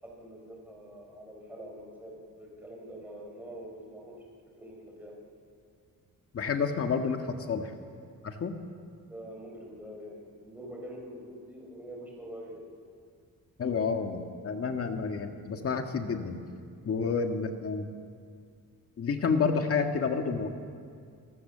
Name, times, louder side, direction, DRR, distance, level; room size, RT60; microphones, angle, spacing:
voice 1, 0.0-4.2 4.6-5.2 9.1-12.6 16.9-17.1, equal, 5° right, -2 dB, 5.0 m, -45 dB
voice 2, 6.3-7.7 8.2-8.6 13.6-16.4 16.9-17.9 19.0-20.5, left 5 dB, 40° left, 5 dB, 1.9 m, -29 dB
28.5 x 20.0 x 6.9 m, 2.3 s
cardioid pair, 165°, 34 cm